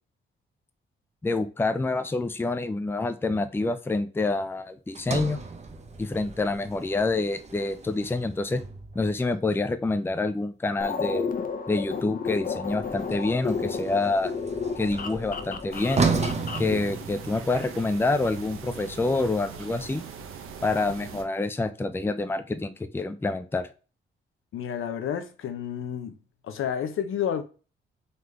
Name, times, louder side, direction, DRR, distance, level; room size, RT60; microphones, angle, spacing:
voice 1, 1.2-5.4 6.0-8.6 8.9-11.3 11.7-14.3 14.8-16.0 16.6-20.0 20.6-23.7, left 3 dB, 10° left, 0.4 m, -27 dB
Sliding door, 4.9-9.2 12.7-17.6, right 4 dB, 30° right, 0.8 m, -33 dB
sound 1, 10.8-16.7, left 5 dB, 45° left, 0.7 m, -32 dB
sound 2, 15.7-21.2, right 6 dB, 85° right, 0.7 m, -41 dB
voice 2, 24.5-26.2 26.4-27.4, left 8 dB, 80° left, 0.7 m, -30 dB
3.9 x 3.3 x 3.2 m
cardioid pair, 75°, 21 cm